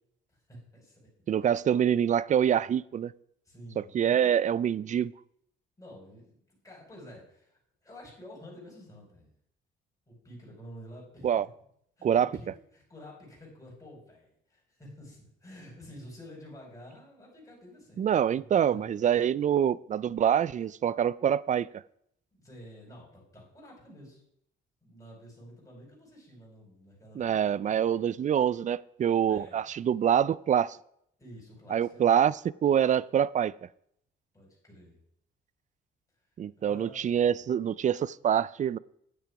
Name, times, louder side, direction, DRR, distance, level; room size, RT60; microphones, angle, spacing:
voice 1, 0.3-1.0 1.4-1.5 3.4-3.9 5.8-9.3 10.1-11.3 12.0-18.9 22.4-24.2 24.8-27.8 29.3-29.6 31.2-32.2 34.3-35.0 36.6-37.4, equal, 15° left, 5.1 m, -50 dB
voice 2, 1.3-3.1 3.8-5.1 11.2-11.5 12.0-12.3 18.0-21.8 27.2-30.8 31.7-33.5 36.4-38.8, right 9 dB, 40° right, 0.4 m, -25 dB
9.1 x 8.9 x 4.8 m
cardioid pair, 90°, 20 cm